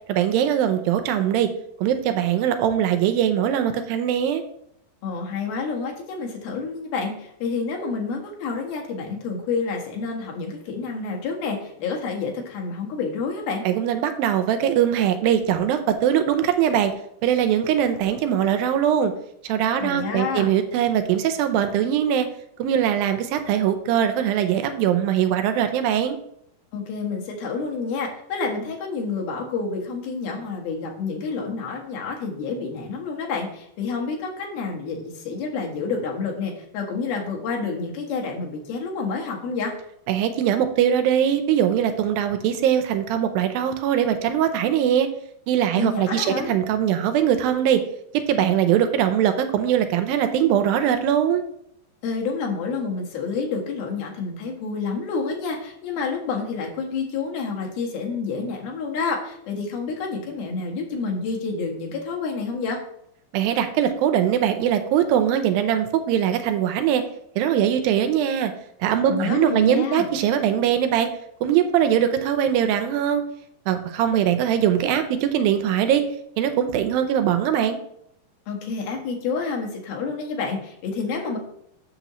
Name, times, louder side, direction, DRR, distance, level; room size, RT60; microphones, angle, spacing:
voice 1, 0.1-1.5 1.8-4.4 13.6-16.9 17.2-19.1 19.4-22.3 22.6-26.2 40.1-45.1 45.5-47.8 48.3-51.4 63.3-67.0 67.4-68.5 68.8-71.1 71.4-73.2 73.7-76.0 76.4-77.8, right 9 dB, 80° right, 8 dB, 2.4 m, -21 dB
voice 2, 5.0-13.6 19.8-20.5 26.7-39.7 45.8-46.6 52.0-62.8 69.1-70.1 78.5-81.4, left 4 dB, 85° left, 0 dB, 3.4 m, -29 dB
8.2 x 6.8 x 3.0 m, 0.72 s
omnidirectional pair, 4.3 m